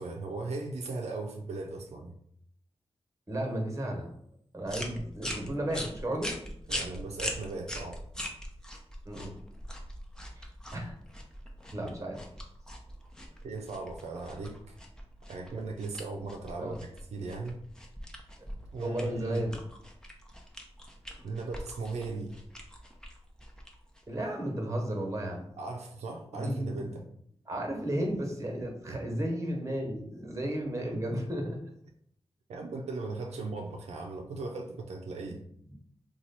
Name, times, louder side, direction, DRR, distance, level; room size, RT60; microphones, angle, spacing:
voice 1, 0.0-2.2 6.7-8.0 13.4-14.6 15.3-17.6 18.7-19.5 21.2-22.4 25.6-27.1 28.9-29.0 31.1-31.2 32.5-35.4, right 3 dB, 85° right, 1 dB, 0.4 m, -38 dB
voice 2, 3.3-4.1 4.5-6.3 9.0-9.3 10.4-10.5 10.7-10.9 11.7-12.2 16.6-16.8 18.8-19.6 24.1-25.5 26.3-26.8 27.5-31.6 35.3-35.4, right 1 dB, 30° right, 1 dB, 1.1 m, -33 dB
sound 1, 4.7-24.2, equal, 5° left, 0.7 m, -42 dB
2.9 x 2.3 x 4.0 m, 0.69 s
cardioid pair, 40°, 11 cm